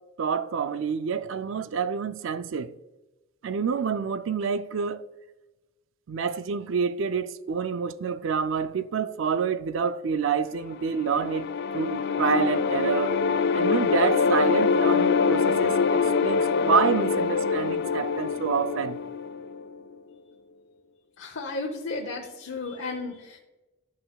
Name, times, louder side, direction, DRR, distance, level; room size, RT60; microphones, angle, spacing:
voice 1, 0.2-2.7 3.4-5.0 6.1-13.2 13.5-19.0, right 6 dB, 70° right, 0.4 m, -27 dB
sound 1, 10.7-19.8, left 5 dB, 55° left, 0.3 m, -25 dB
voice 2, 21.2-23.4, left 3 dB, 80° left, 0.8 m, -34 dB
12.0 x 5.5 x 2.3 m
head